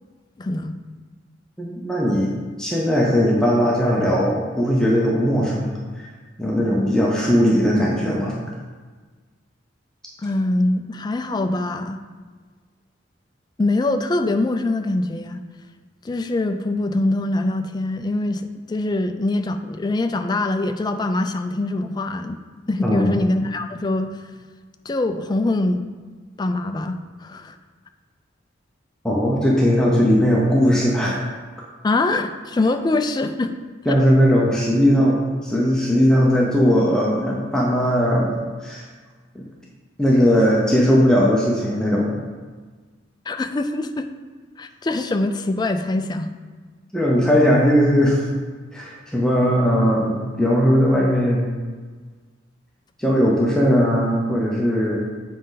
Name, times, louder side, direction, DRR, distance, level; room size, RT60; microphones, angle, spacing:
voice 1, 0.4-0.8 10.2-12.0 13.6-15.4 16.0-22.4 22.7-24.1 24.9-25.9 26.4-27.6 31.8-33.5 43.3-44.1 44.6-46.3, left 2 dB, 20° left, 7 dB, 0.3 m, -23 dB
voice 2, 1.6-2.3 2.6-5.7 6.0-6.1 6.4-8.4 22.8-23.1 29.0-31.2 33.9-38.9 39.3-39.4 40.0-42.2 46.9-48.2 48.7-51.5 53.0-55.0, equal, 5° left, -4 dB, 0.7 m, -18 dB
7.6 x 5.1 x 3.9 m, 1.5 s
head